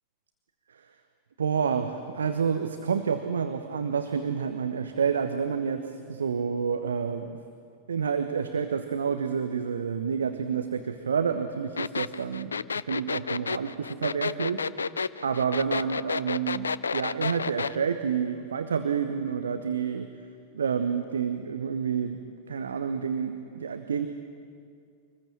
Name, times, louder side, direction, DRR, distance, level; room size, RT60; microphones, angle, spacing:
voice 1, 1.4-7.4 7.9-14.9 15.2-20.1 20.5-24.1, right 6 dB, 70° right, 7 dB, 1.1 m, -29 dB
sound 1, 11.8-17.8, left 5 dB, 75° left, 0.5 m, -30 dB
25.0 x 20.5 x 7.4 m, 2.3 s
figure-of-eight pair, 90°, 0 cm